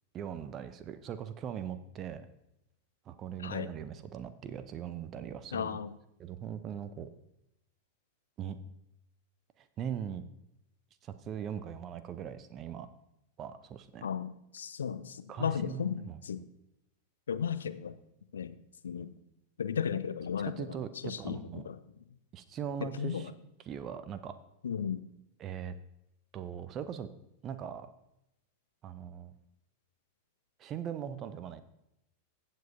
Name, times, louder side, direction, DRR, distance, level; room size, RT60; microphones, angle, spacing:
voice 1, 0.1-2.3 3.1-5.8 6.2-7.1 8.4-8.6 9.6-10.2 11.0-12.9 13.4-14.1 15.3-16.2 20.6-21.6 22.3-23.3 23.7-24.4 25.4-25.8 26.3-27.1 27.4-27.9 28.8-29.3 30.6-31.6, right 8 dB, 30° right, 12 dB, 0.6 m, -40 dB
voice 2, 3.4-3.7 5.5-6.0 14.0-16.4 17.3-18.0 18.3-18.5 18.8-19.1 19.6-20.7 21.0-21.8 22.8-23.3 24.6-25.0, left 7 dB, 70° left, 13 dB, 0.5 m, -35 dB
15.0 x 7.3 x 2.6 m, 0.83 s
figure-of-eight pair, 90°, 0 cm